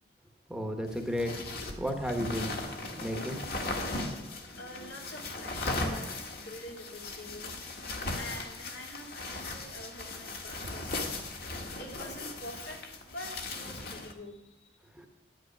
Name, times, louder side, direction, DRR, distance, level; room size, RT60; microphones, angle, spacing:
voice 1, 0.5-1.4 1.8-2.6 2.9-3.6 14.9-15.1, equal, 5° right, 4 dB, 1.0 m, -33 dB
sound 1, 0.9-14.1, left 2 dB, 55° left, 1.7 m, -38 dB
voice 2, 4.6-7.6 8.1-11.3 11.8-14.8, left 1 dB, 80° left, 0 dB, 2.6 m, -46 dB
10.5 x 9.4 x 6.0 m, 0.86 s
head